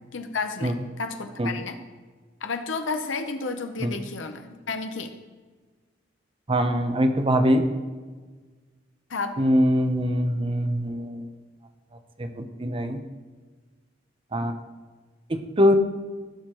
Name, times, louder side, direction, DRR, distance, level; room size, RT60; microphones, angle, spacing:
voice 1, 0.1-1.8 2.4-5.1 9.1-9.4, left 4 dB, 85° left, 7 dB, 0.8 m, -31 dB
voice 2, 6.5-7.6 9.4-11.3 12.2-13.0 14.3-14.5 15.3-15.7, equal, 30° right, 7 dB, 0.8 m, -23 dB
16.5 x 6.6 x 3.0 m, 1.4 s
head